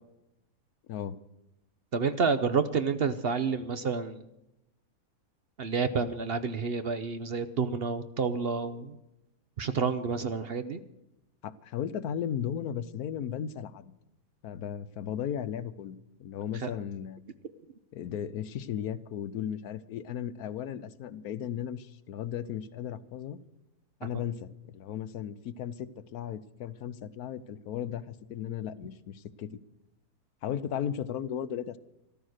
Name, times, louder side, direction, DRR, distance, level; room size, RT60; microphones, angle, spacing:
voice 1, 1.9-4.3 5.6-9.0 9.6-10.8 16.6-16.7 24.0-24.1, right 5 dB, 50° right, 11 dB, 0.8 m, -29 dB
voice 2, 11.4-13.8 14.4-17.2 17.9-23.4 24.0-29.5 30.4-31.8, left 9 dB, 85° left, 15 dB, 1.2 m, -36 dB
14.0 x 13.0 x 6.5 m, 0.90 s
omnidirectional pair, 1.5 m